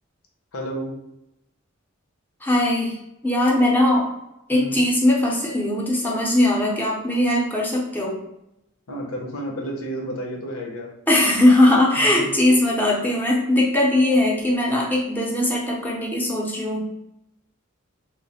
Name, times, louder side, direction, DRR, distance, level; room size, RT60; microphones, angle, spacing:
voice 1, 0.5-0.9 4.5-4.8 8.9-10.9 12.0-12.3, right 1 dB, 75° left, 0 dB, 0.8 m, -31 dB
voice 2, 2.4-3.0 3.2-4.1 4.5-8.2 11.1-16.9, left 1 dB, 10° left, -3 dB, 0.6 m, -20 dB
3.1 x 2.0 x 4.1 m, 0.85 s
head